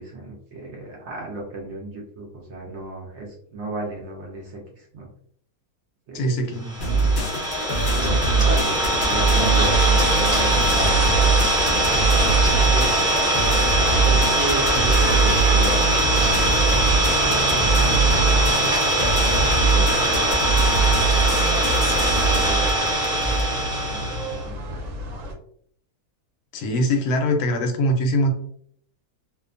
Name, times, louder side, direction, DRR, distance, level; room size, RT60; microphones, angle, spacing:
voice 1, 0.0-5.1 6.1-6.4 8.0-11.5 11.9-12.9 13.8-18.3 18.6-19.0 19.3-20.4 21.0-21.6 22.1-23.3 23.7-24.9, right 2 dB, 60° right, -1 dB, 0.8 m, -35 dB
voice 2, 6.1-6.7 26.5-28.4, equal, 85° left, 3 dB, 1.1 m, -22 dB
Idling, 6.7-24.4, right 1 dB, 5° right, 0.7 m, -22 dB
sound 1, 6.8-23.5, right 3 dB, 60° left, 0.5 m, -22 dB
sound 2, 9.7-25.3, right 1 dB, 85° right, 1.1 m, -33 dB
2.7 x 2.2 x 2.4 m, 0.62 s
omnidirectional pair, 1.6 m